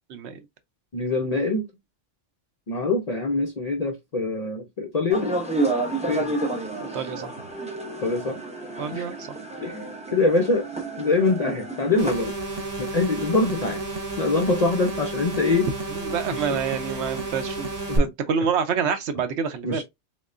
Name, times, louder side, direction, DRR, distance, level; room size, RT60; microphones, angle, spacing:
voice 1, 0.1-0.4 6.8-7.3 8.8-9.1 15.9-17.7 18.0-19.8, right 6 dB, 70° right, 0.9 m, -27 dB
voice 2, 0.9-1.7 2.7-5.4 6.1-6.3 8.0-8.4 8.9-9.0 9.6-9.8 10.1-10.7 11.0-12.4 12.8-13.8 14.2-15.7 16.3-16.6 17.9-18.0 19.6-19.8, left 3 dB, 50° left, 0.4 m, -24 dB
sound 1, 5.1-12.1, right 2 dB, 10° right, 0.4 m, -30 dB
sound 2, 12.0-18.0, right 3 dB, 40° right, 0.7 m, -31 dB
3.6 x 3.2 x 2.5 m
omnidirectional pair, 1.3 m